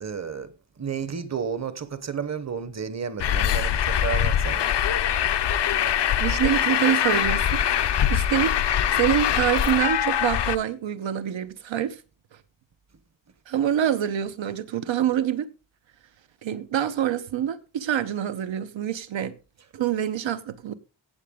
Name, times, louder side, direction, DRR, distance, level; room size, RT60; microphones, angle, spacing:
voice 1, 0.0-4.7, right 6 dB, 35° right, 0.9 m, -32 dB
Truck, 3.2-10.6, left 9 dB, 65° left, 0.7 m, -23 dB
voice 2, 6.2-8.5 8.9-12.0 13.5-15.5 16.4-19.4 19.7-20.7, right 10 dB, 85° right, 1.0 m, -26 dB
15.5 x 7.7 x 3.7 m
wide cardioid pair, 150°, 44 cm